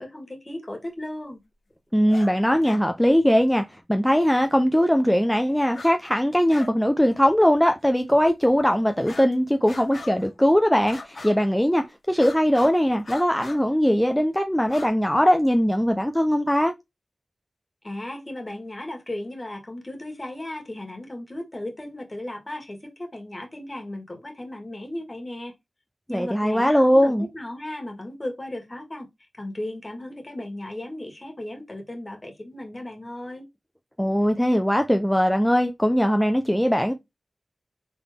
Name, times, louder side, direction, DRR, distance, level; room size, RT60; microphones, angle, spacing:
voice 1, 0.0-1.4 17.8-25.5 26.1-29.1 29.4-33.4, left 1 dB, 35° left, 1.7 m, -36 dB
voice 2, 1.9-16.7 26.1-27.3 34.0-36.9, equal, 5° left, 0.5 m, -20 dB
sound 1, 2.1-2.3 2.6-2.8 4.5-4.6 5.7-6.0 6.2-6.7 7.0-7.2 7.8-7.9 9.0-9.3 9.7-10.3 10.9-11.6 12.1-12.8 13.0-13.6 14.6-14.9, left 3 dB, 70° left, 1.1 m, -40 dB
3.8 x 3.5 x 3.5 m
cardioid pair, 40°, 0 cm